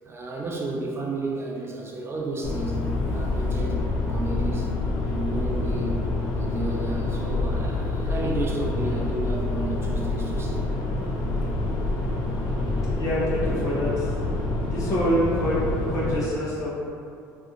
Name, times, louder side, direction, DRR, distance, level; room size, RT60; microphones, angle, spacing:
voice 1, 0.0-2.8 3.1-3.8 4.1-6.0 6.3-10.7 12.7-12.9, right 2 dB, 35° right, -2 dB, 0.5 m, -32 dB
sound 1, 2.4-16.2, left 2 dB, 75° left, 0.4 m, -27 dB
voice 2, 12.7-14.1 14.6-16.7, equal, 45° left, -7 dB, 0.8 m, -26 dB
2.7 x 2.4 x 2.5 m, 2.5 s
supercardioid pair, 75°, 7 cm